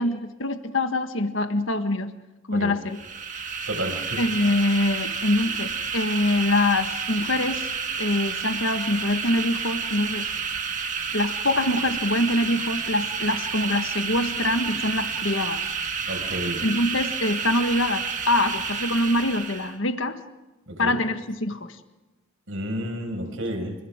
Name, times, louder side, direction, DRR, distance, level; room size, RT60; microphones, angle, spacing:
voice 1, 0.0-2.1 2.5-3.0 4.2-7.7 8.0-10.3 11.1-15.7 16.6-20.2 20.8-21.8, left 1 dB, 65° left, 8 dB, 1.6 m, -24 dB
sound 1, 2.9-19.8, right 6 dB, 35° right, 1.8 m, -30 dB
voice 2, 3.7-4.2 16.1-16.7 20.7-21.0 22.5-23.8, equal, 65° right, 4 dB, 5.9 m, -31 dB
29.5 x 26.5 x 3.8 m, 1.1 s
head